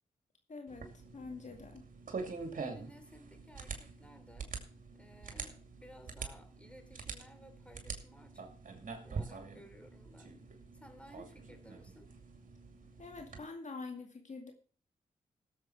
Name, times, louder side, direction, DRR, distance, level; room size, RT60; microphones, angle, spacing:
voice 1, 0.5-1.9 13.0-14.5, left 3 dB, 50° left, 3 dB, 2.2 m, -46 dB
sound 1, 0.7-13.4, right 4 dB, 60° right, 2.4 m, -45 dB
voice 2, 2.6-4.5 4.9-8.4 9.0-10.4 10.7-12.1, equal, 10° left, 7 dB, 3.2 m, -57 dB
16.5 x 7.4 x 4.5 m, 0.41 s
supercardioid pair, 45°, 15 cm